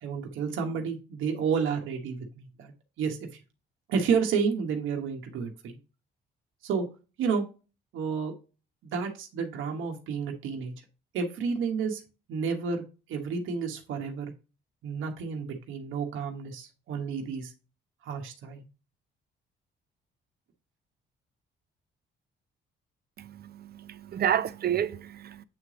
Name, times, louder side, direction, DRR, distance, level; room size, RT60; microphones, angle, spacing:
voice 1, 0.0-2.7 3.0-3.4 3.9-5.8 6.6-6.9 7.2-7.5 7.9-8.3 8.8-10.7 11.1-12.0 12.3-12.8 13.1-14.3 14.8-17.5 18.0-18.7, right 6 dB, 85° right, 1.2 m, -30 dB
voice 2, 23.2-25.4, right 10 dB, 50° right, 0.6 m, -30 dB
8.1 x 3.3 x 3.6 m
cardioid pair, 90°, 20 cm